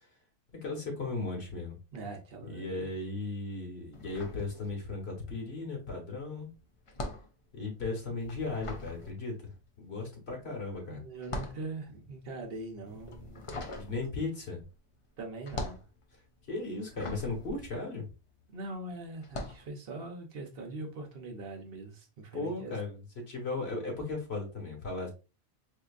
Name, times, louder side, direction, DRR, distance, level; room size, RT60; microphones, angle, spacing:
voice 1, 0.6-1.7 2.5-6.5 7.5-11.0 13.7-14.6 16.5-18.1 22.3-25.1, left 3 dB, 75° left, 1.5 m, -36 dB
voice 2, 1.9-2.9 10.7-13.4 15.2-15.8 18.5-22.8, right 2 dB, 65° right, 1.0 m, -42 dB
sound 1, 3.9-5.2 5.4-18.6 19.2-19.7, left 2 dB, 35° left, 0.6 m, -42 dB
4.4 x 2.8 x 2.4 m
omnidirectional pair, 1.1 m